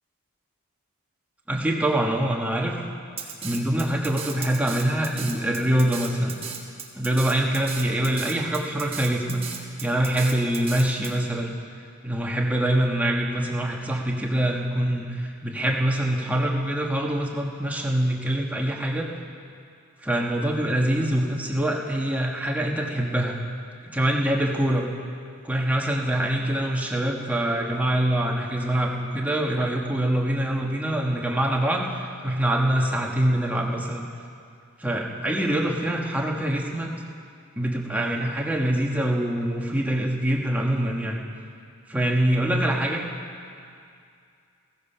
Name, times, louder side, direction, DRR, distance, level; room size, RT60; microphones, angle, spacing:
voice 1, 1.5-2.8 3.4-6.4 6.9-9.5 9.8-11.5 12.0-19.1 20.0-23.4 23.8-24.8 25.4-34.1 34.8-36.9 37.5-41.2 41.9-43.1, right 1 dB, 5° right, -1 dB, 1.3 m, -24 dB
Drum kit, 3.2-11.1, right 7 dB, 25° right, 1.3 m, -36 dB
15.0 x 14.5 x 5.6 m, 2.4 s
head